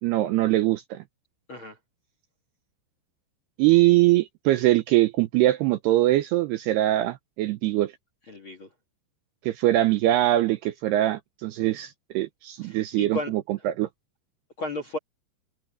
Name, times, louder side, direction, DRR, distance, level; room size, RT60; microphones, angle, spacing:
voice 1, 0.0-1.0 3.6-7.9 9.4-13.9, right 15 dB, 80° right, 2.5 m, -22 dB
voice 2, 8.3-8.7 12.6-13.7 14.6-15.0, left 2 dB, 45° left, 1.7 m, -34 dB
open air
omnidirectional pair, 5.4 m